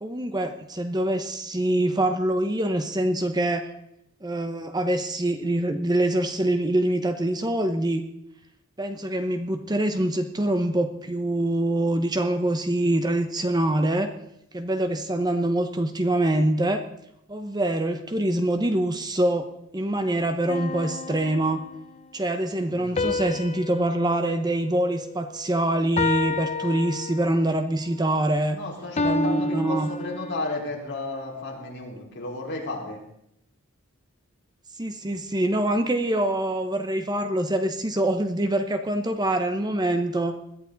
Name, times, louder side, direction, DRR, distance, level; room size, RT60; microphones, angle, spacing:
voice 1, 0.0-3.7 4.2-8.0 8.8-14.1 14.5-16.8 17.3-21.6 22.1-28.6 29.0-29.9 34.7-40.4, right 1 dB, 20° right, 7 dB, 0.8 m, -25 dB
sound 1, 20.5-21.9 23.0-25.4 26.0-27.6 29.0-30.6, left 3 dB, 30° left, 0.7 m, -30 dB
voice 2, 22.7-23.4 28.5-33.0, left 2 dB, 55° left, -2 dB, 4.3 m, -33 dB
21.0 x 13.5 x 4.0 m, 0.78 s
head